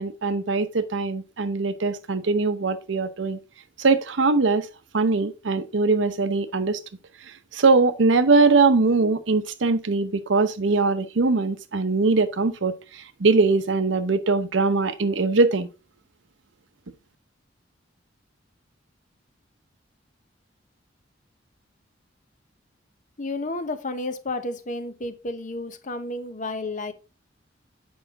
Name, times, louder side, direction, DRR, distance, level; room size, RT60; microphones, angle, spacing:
voice 1, 0.0-3.4 3.8-4.7 4.9-6.8 7.5-15.7, right 3 dB, 80° right, 0.7 m, -21 dB
voice 2, 23.2-26.9, left 2 dB, 40° left, 0.8 m, -31 dB
7.9 x 5.6 x 3.6 m
head